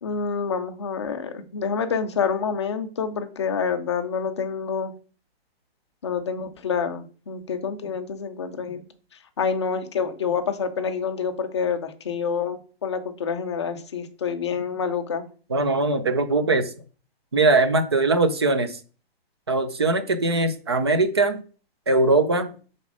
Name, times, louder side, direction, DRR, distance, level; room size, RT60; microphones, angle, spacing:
voice 1, 0.0-4.9 6.0-8.8 9.4-15.2, left 6 dB, 30° left, 7 dB, 0.5 m, -27 dB
voice 2, 15.5-16.7 17.3-18.8 19.5-21.4 21.9-22.5, right 2 dB, 25° right, 10 dB, 0.4 m, -21 dB
5.7 x 4.1 x 4.8 m, 0.38 s
hypercardioid pair, 175°, 31 cm